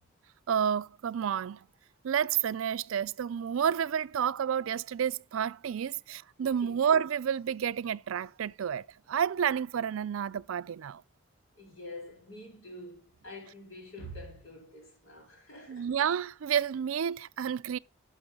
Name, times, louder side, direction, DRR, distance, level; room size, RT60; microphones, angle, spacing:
voice 1, 0.5-1.7 2.0-11.0 15.7-17.8, right 8 dB, 85° right, 0.4 m, -30 dB
voice 2, 11.6-15.9, left 1 dB, 85° left, 4.2 m, -46 dB
11.5 x 6.6 x 3.8 m
head